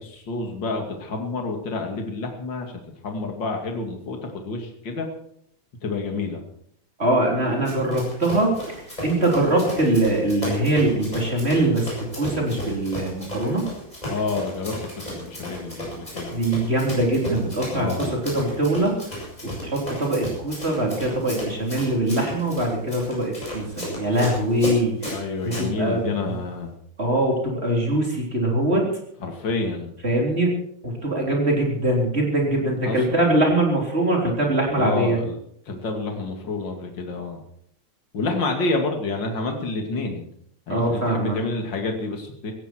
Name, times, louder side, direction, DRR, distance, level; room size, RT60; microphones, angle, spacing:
voice 1, 0.0-2.7 3.0-5.1 5.8-6.4 14.1-16.3 17.7-18.1 25.1-26.7 29.2-29.9 32.9-33.2 34.7-35.4 35.7-37.4 38.1-40.3 40.7-42.5, left 3 dB, 40° left, 3 dB, 3.0 m, -28 dB
voice 2, 7.0-13.7 16.3-19.0 19.4-26.4 27.0-28.9 30.0-30.5 30.8-35.2 40.7-41.4, right 1 dB, 20° right, 0 dB, 3.9 m, -23 dB
Run, 7.6-25.7, equal, 10° left, 8.2 m, -34 dB
16.5 x 16.5 x 4.6 m, 0.67 s
omnidirectional pair, 3.3 m